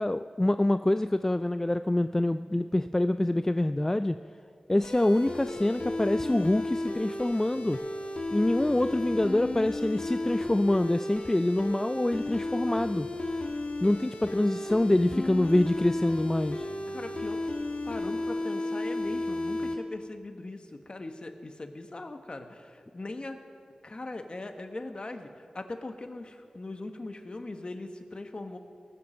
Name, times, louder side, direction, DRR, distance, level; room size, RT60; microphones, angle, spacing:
voice 1, 0.0-4.2 4.7-7.8 8.3-13.1 13.8-16.7, left 1 dB, 20° left, 11 dB, 0.3 m, -26 dB
sound 1, 4.8-19.7, left 2 dB, 70° left, 1.6 m, -34 dB
voice 2, 16.9-17.5 17.9-23.4 23.8-28.6, left 2 dB, 40° left, 7 dB, 1.2 m, -40 dB
19.5 x 7.2 x 6.5 m, 2.2 s
wide cardioid pair, 60°, 2 cm